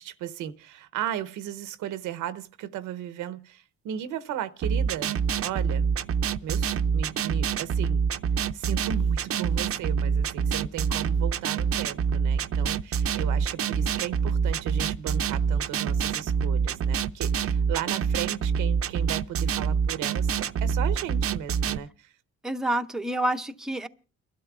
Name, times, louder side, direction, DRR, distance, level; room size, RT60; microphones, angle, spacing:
voice 1, 0.0-5.2 5.4-5.9 6.4-8.0 8.5-22.1, right 10 dB, 90° right, 0.8 m, -35 dB
sound 1, 4.6-21.8, right 6 dB, 50° right, 0.6 m, -26 dB
voice 2, 22.4-23.9, right 1 dB, ahead, 0.6 m, -28 dB
30.0 x 12.5 x 2.3 m
cardioid pair, 90°, 30 cm